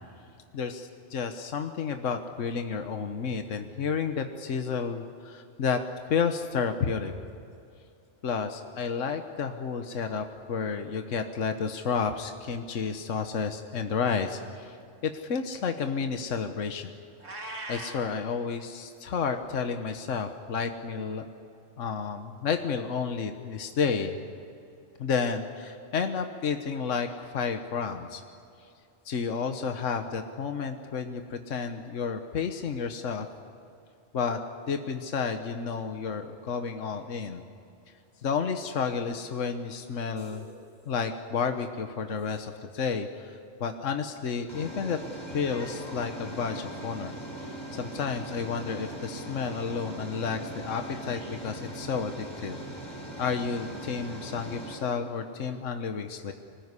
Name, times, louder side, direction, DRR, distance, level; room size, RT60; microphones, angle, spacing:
voice 1, 0.5-5.8 6.1-7.1 8.2-14.8 15.0-16.9 17.7-21.3 21.8-24.2 25.0-28.2 29.0-33.3 34.1-34.4 34.7-37.4 38.2-40.5 40.9-45.0 45.3-47.1 47.4-52.6 53.2-56.3, left 6 dB, 75° left, 6 dB, 1.5 m, -31 dB
Meow, 17.2-18.1, right 2 dB, 70° right, 3.4 m, -39 dB
sound 1, 40.2-40.6 42.3-42.4 44.5-54.8, right 1 dB, 20° left, 5.8 m, -40 dB
25.5 x 19.5 x 9.7 m, 2.5 s
omnidirectional pair, 1.3 m